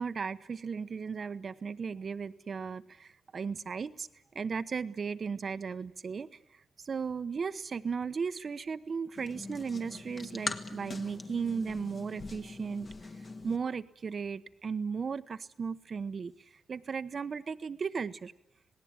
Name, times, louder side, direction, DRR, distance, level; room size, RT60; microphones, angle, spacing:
voice 1, 0.0-4.1 4.3-6.3 6.8-12.9 13.4-16.3 16.7-18.3, right 5 dB, 45° right, 12 dB, 0.9 m, -36 dB
sound 1, 9.2-13.6, left 3 dB, 35° left, 1.8 m, -42 dB
26.5 x 18.5 x 8.9 m, 0.86 s
cardioid pair, 105°, 0 cm